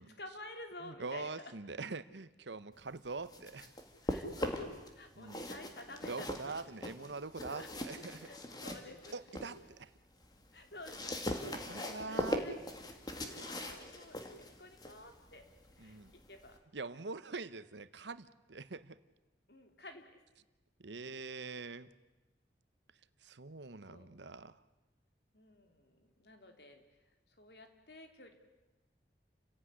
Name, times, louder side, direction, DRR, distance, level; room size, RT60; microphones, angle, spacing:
voice 1, 0.0-1.5 4.0-6.6 7.5-7.7 8.2-9.2 10.5-11.2 11.7-12.6 12.8-15.5 15.8-16.0 16.3-16.6 19.5-20.2 23.9-24.1 25.3-26.8 27.4-28.3, left 2 dB, 70° left, 5 dB, 3.2 m, -52 dB
voice 2, 0.8-3.7 5.2-5.4 6.0-8.3 9.1-9.9 11.5-12.6 15.8-16.1 16.7-19.0 20.8-21.9 23.2-24.6, right 3 dB, 85° right, 14 dB, 1.0 m, -44 dB
sound 1, 3.1-4.9 5.2-9.6 10.0-16.6, left 1 dB, 20° left, 2.2 m, -41 dB
29.0 x 16.5 x 9.8 m, 1.1 s
head